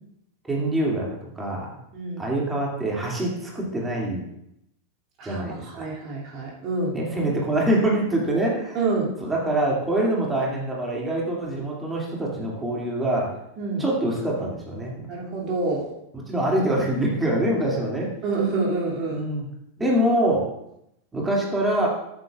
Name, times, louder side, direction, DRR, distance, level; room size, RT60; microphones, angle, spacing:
voice 1, 0.5-1.1 1.4-1.8 2.2-4.2 5.2-5.9 6.9-8.9 9.2-13.3 13.8-15.1 16.1-18.4 19.1-19.5 19.8-20.5 21.1-21.9, right 1 dB, 10° right, -3 dB, 2.5 m, -25 dB
voice 2, 1.9-2.2 5.2-7.0 8.7-9.1 13.6-13.8 15.1-15.9 18.2-19.3, right 3 dB, 35° right, -3 dB, 2.6 m, -27 dB
13.0 x 8.8 x 2.5 m, 0.80 s
figure-of-eight pair, 90°, 0 cm